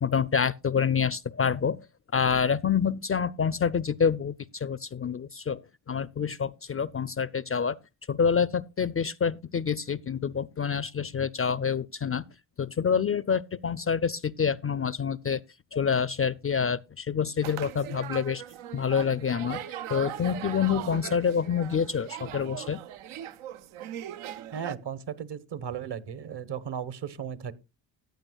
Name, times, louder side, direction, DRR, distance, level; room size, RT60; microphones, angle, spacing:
voice 1, 0.0-1.8 2.1-5.6 5.9-7.8 8.1-12.2 12.6-15.4 15.7-18.4 18.7-22.8, left 6 dB, 30° left, 0.4 m, -27 dB
sound 1, 17.4-24.8, right 11 dB, 85° right, 0.7 m, -39 dB
voice 2, 24.5-27.5, right 8 dB, 55° right, 1.1 m, -35 dB
14.5 x 8.9 x 2.3 m
supercardioid pair, 45°, 48 cm